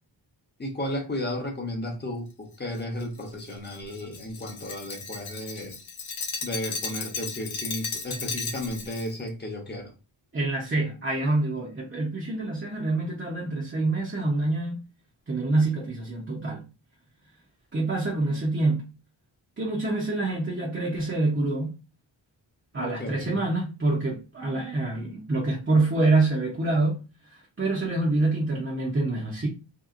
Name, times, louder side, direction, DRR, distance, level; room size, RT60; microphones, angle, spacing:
voice 1, 0.6-5.8 6.4-9.9 22.7-23.4, left 1 dB, 20° left, 0.7 m, -34 dB
Glass, 2.7-9.1, left 5 dB, 85° left, 0.7 m, -35 dB
voice 2, 10.3-14.8 15.3-16.7 17.7-18.9 19.6-21.7 22.7-27.0 27.3-29.5, right 2 dB, 25° right, 0.6 m, -26 dB
2.9 x 2.8 x 2.4 m
wide cardioid pair, 145°, 47 cm